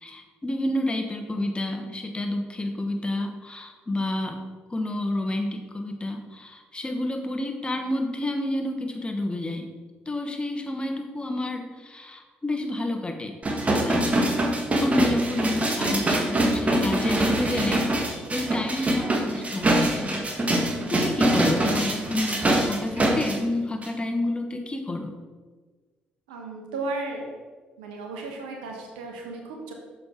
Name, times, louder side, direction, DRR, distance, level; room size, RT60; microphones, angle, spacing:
voice 1, 0.0-4.4 4.7-9.7 10.1-13.4 13.8-14.4 14.8-25.1, left 1 dB, 20° left, 5 dB, 1.2 m, -29 dB
sound 1, 13.4-23.4 23.8-23.9, right 1 dB, 30° right, 1.5 m, -24 dB
voice 2, 26.3-27.3 27.8-29.7, right 3 dB, 90° right, 1 dB, 1.1 m, -34 dB
6.8 x 5.2 x 4.4 m, 1.4 s
hypercardioid pair, 50°, 5 cm